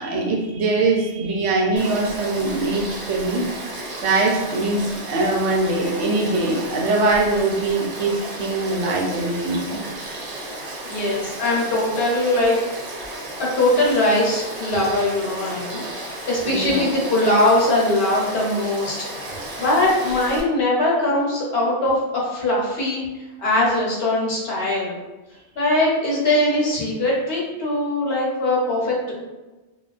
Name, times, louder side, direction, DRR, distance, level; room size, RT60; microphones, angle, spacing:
voice 1, 0.0-3.4 4.0-9.8 16.5-16.9, right 2 dB, 85° right, -1 dB, 0.9 m, -22 dB
Frog / Stream, 1.8-20.4, right 2 dB, 60° right, 0.9 m, -34 dB
voice 2, 10.9-12.6 13.4-23.0 23.4-25.0 25.6-29.2, left 1 dB, 65° left, -4 dB, 0.9 m, -21 dB
2.3 x 2.3 x 2.4 m, 1.1 s
omnidirectional pair, 1.2 m